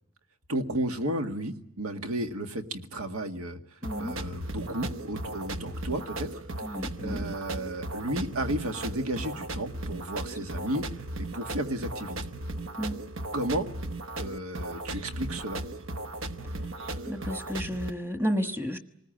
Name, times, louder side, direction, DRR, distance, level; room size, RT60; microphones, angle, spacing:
voice 1, 0.5-6.4 7.0-12.2 13.3-13.7 14.2-15.6, right 1 dB, 80° right, 6 dB, 1.9 m, -33 dB
voice 2, 3.8-4.1 6.6-7.2 10.5-10.6 12.8-13.0 17.1-18.8, equal, 10° right, 8 dB, 1.3 m, -32 dB
sound 1, 3.8-17.9, right 1 dB, 60° right, 0.9 m, -36 dB
27.5 x 20.0 x 9.0 m, 0.81 s
head